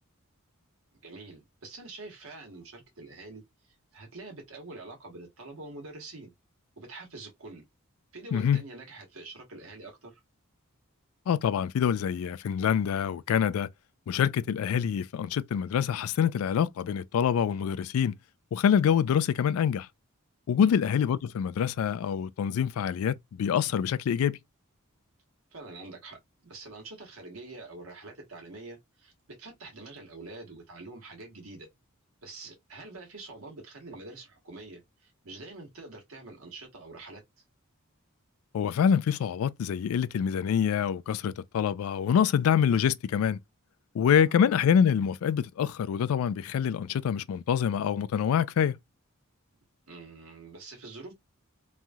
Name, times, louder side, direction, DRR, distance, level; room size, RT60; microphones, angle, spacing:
voice 1, 1.0-3.4 3.7-6.3 6.8-7.6 8.1-10.2 20.6-20.8 25.5-31.7 32.2-37.2 44.3-44.4 49.9-51.1, right 3 dB, 70° right, 1.3 m, -45 dB
voice 2, 8.3-8.6 11.3-13.7 14.1-18.2 18.5-19.9 20.5-24.4 38.5-43.4 43.9-48.8, left 8 dB, 70° left, 0.3 m, -26 dB
3.0 x 2.4 x 2.6 m
head